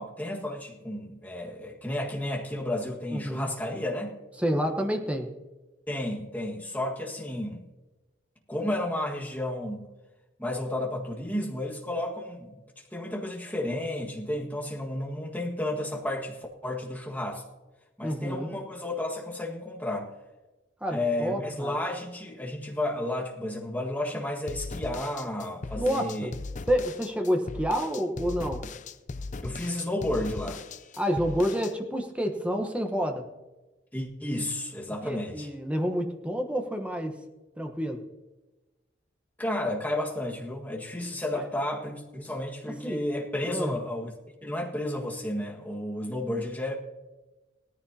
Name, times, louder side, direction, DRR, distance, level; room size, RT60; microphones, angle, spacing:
voice 1, 0.0-4.2 5.9-7.6 8.5-9.9 10.4-12.6 12.9-17.4 18.0-20.1 20.9-26.3 29.4-30.6 33.9-35.5 39.4-44.1 44.4-46.7, left 1 dB, 10° left, -2 dB, 1.7 m, -32 dB
voice 2, 3.1-3.5 4.4-5.3 18.0-18.5 20.8-21.7 25.8-26.3 26.7-28.6 31.0-33.2 35.0-37.2 37.6-38.0 41.3-41.4 42.8-43.0 43.5-43.7, equal, 5° right, 4 dB, 1.1 m, -29 dB
sound 1, 24.5-31.7, left 3 dB, 40° left, 0.5 m, -38 dB
18.0 x 14.0 x 2.8 m, 1.1 s
head